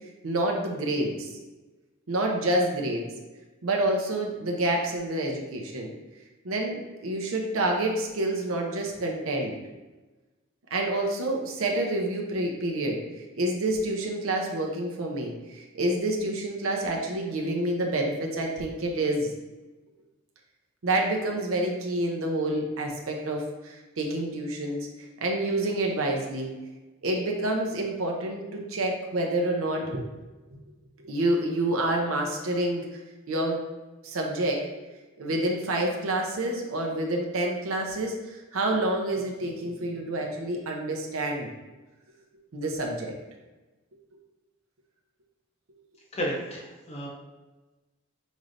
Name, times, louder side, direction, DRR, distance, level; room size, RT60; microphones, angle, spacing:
voice 1, 0.2-1.3 2.1-3.1 3.6-5.9 6.4-9.5 10.7-19.3 20.8-26.5 27.0-30.0 30.5-30.6 31.0-33.0 33.3-33.6 34.0-34.7 35.2-41.5 42.5-43.1, right 1 dB, 85° right, 1 dB, 0.7 m, -28 dB
voice 2, 46.1-47.1, equal, 30° left, -1 dB, 0.8 m, -32 dB
5.3 x 3.2 x 2.6 m, 1.2 s
head